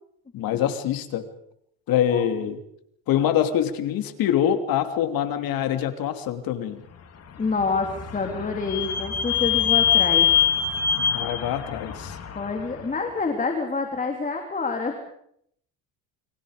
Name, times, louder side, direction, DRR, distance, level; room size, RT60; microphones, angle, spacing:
voice 1, 0.3-1.3 1.9-2.6 3.1-6.8 11.0-12.2, left 10 dB, 60° left, 8 dB, 3.0 m, -25 dB
Vehicle / Squeak, 7.3-12.9, left 8 dB, 40° left, 3.7 m, -24 dB
voice 2, 7.4-10.5 12.4-15.2, left 4 dB, 20° left, 3 dB, 3.5 m, -27 dB
29.0 x 24.5 x 5.2 m, 0.70 s
cardioid pair, 110°, 39 cm